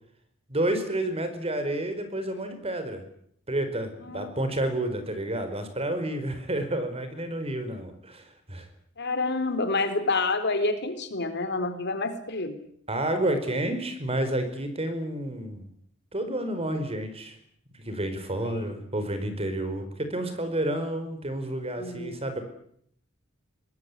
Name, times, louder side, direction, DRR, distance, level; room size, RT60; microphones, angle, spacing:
voice 1, 0.5-3.0 3.5-8.7 12.9-15.7 16.1-17.4 17.8-22.4, right 1 dB, 30° right, 9 dB, 4.9 m, -30 dB
voice 2, 9.0-12.6 18.4-18.7 21.8-22.2, left 3 dB, 60° left, 9 dB, 3.8 m, -28 dB
24.0 x 19.5 x 10.0 m, 0.68 s
head